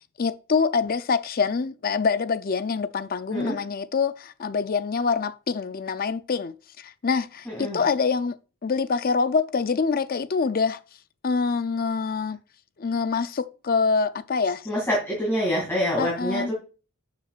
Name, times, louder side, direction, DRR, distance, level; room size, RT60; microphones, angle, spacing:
voice 1, 0.2-8.4 8.6-10.8 11.2-12.4 12.8-14.7 16.0-16.5, left 5 dB, 40° left, 0.5 m, -25 dB
voice 2, 7.5-7.8 14.7-16.5, equal, 10° left, 2.5 m, -26 dB
11.0 x 7.3 x 2.4 m
head